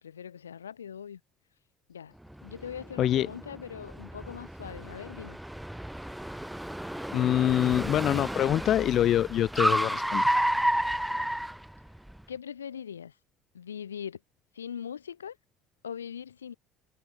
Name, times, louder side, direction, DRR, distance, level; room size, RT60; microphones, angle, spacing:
voice 1, 0.0-1.2 1.9-2.1 2.4-5.4 11.1-11.3 12.3-13.1 13.5-14.2 14.5-15.4 15.8-16.5, left 8 dB, 85° left, 3.1 m, -41 dB
Car, 2.3-12.2, right 1 dB, 5° right, 2.0 m, -31 dB
voice 2, 7.1-10.4, left 11 dB, 50° left, 0.5 m, -25 dB
figure-of-eight pair, 60°, 0 cm